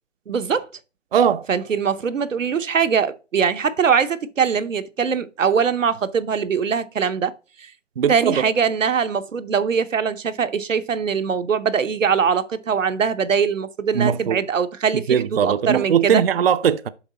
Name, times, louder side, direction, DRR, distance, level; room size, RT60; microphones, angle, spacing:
voice 1, 0.3-0.7 1.5-7.3 7.6-7.7 8.1-16.2, right 6 dB, 85° right, 0.8 m, -22 dB
voice 2, 1.1-1.5 8.0-8.5 13.9-14.4 15.1-16.9, right 8 dB, 50° right, 0.4 m, -19 dB
7.1 x 4.6 x 4.0 m
hypercardioid pair, 155°, 37 cm